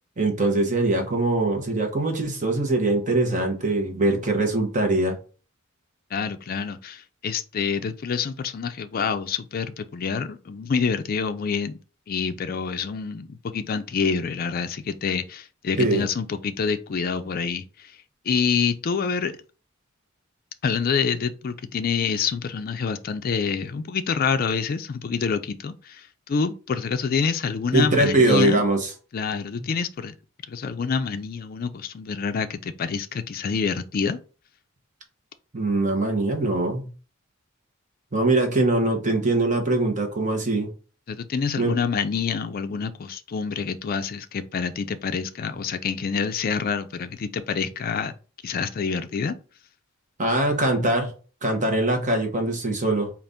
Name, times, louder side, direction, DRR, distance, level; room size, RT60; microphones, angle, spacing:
voice 1, 0.2-5.2 15.8-16.0 27.7-28.9 35.5-36.9 38.1-40.7 41.6-41.7 50.2-51.1 51.4-53.1, right 2 dB, 40° right, 0.9 m, -22 dB
voice 2, 6.1-11.8 12.1-17.9 18.3-19.3 20.6-28.6 29.1-30.1 30.5-34.2 41.1-48.1 48.4-49.4, left 5 dB, 45° left, 0.4 m, -27 dB
3.9 x 2.4 x 3.5 m
head